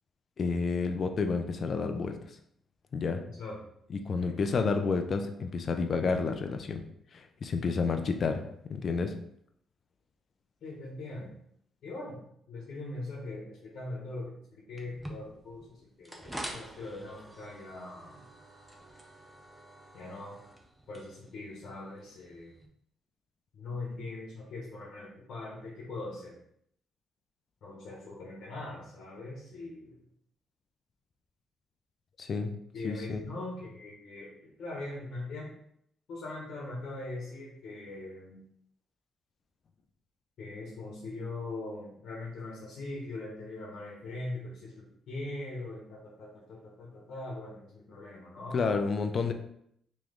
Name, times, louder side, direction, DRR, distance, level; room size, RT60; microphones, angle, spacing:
voice 1, 0.4-2.2 2.9-3.2 3.9-6.8 7.1-8.4 8.7-9.2 32.2-32.5 32.8-33.2 48.5-49.3, left 4 dB, 50° left, 6 dB, 0.5 m, -30 dB
voice 2, 3.2-3.6 4.2-4.4 10.6-11.3 11.8-18.2 19.9-20.4 20.9-22.5 23.5-26.4 27.6-30.0 32.7-35.5 36.1-38.4 40.4-48.6, left 2 dB, 65° left, -3 dB, 1.1 m, -41 dB
sound 1, 14.8-22.7, right 1 dB, 5° right, 0.7 m, -47 dB
3.1 x 3.1 x 3.7 m, 0.70 s
cardioid pair, 90°, 0 cm